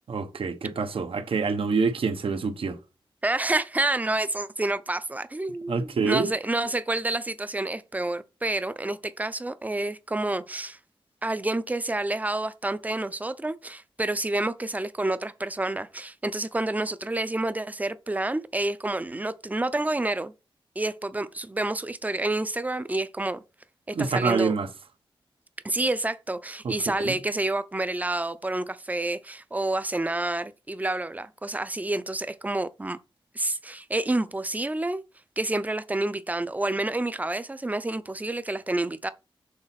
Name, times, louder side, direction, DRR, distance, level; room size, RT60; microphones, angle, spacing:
voice 1, 0.1-2.8 5.7-6.3 23.9-24.7 26.6-26.7 27.0-27.2, right 4 dB, 75° right, 1.0 m, -26 dB
voice 2, 3.2-10.8 11.2-20.3 20.8-23.4 23.9-24.5 25.6-33.0 33.3-35.0 35.4-39.1, right 2 dB, 15° right, 0.5 m, -29 dB
6.5 x 4.0 x 5.8 m
wide cardioid pair, 150°, 9 cm